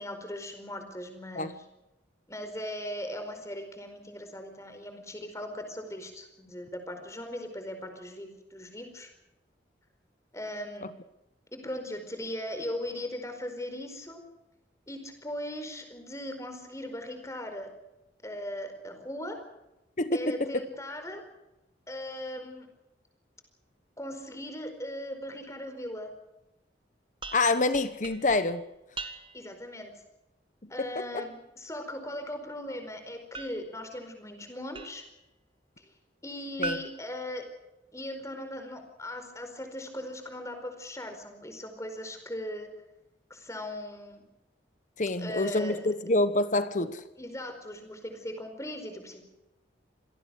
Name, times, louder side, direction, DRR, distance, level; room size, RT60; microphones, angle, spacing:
voice 1, 0.0-1.6 2.3-9.1 10.3-10.9 11.5-14.2 14.9-17.7 18.2-19.4 20.1-21.2 21.9-22.7 24.0-26.1 29.3-29.9 30.7-35.0 35.8-35.9 36.2-37.4 37.9-42.7 43.3-44.2 45.2-45.9 46.8-49.2, left 1 dB, 15° left, 6 dB, 4.6 m, -39 dB
voice 2, 20.0-20.6 27.3-28.6 30.8-31.2 36.6-36.8 45.0-47.0, left 2 dB, 45° left, 12 dB, 1.1 m, -27 dB
sound 1, 27.2-29.6 33.3-35.2 36.6-38.1, right 3 dB, 25° right, 1.5 m, -42 dB
27.0 x 18.5 x 6.4 m, 0.93 s
head